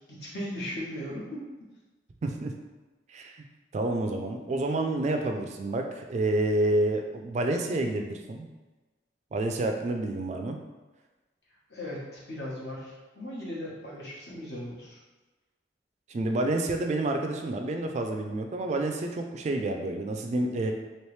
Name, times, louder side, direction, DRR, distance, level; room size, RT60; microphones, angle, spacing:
voice 1, 0.1-1.5 11.7-15.0, left 1 dB, 65° left, -6 dB, 1.1 m, -37 dB
voice 2, 2.2-2.5 3.1-3.4 3.7-8.5 9.3-10.6 16.1-20.7, right 2 dB, 40° right, 4 dB, 0.3 m, -29 dB
3.1 x 2.9 x 3.2 m, 1.2 s
head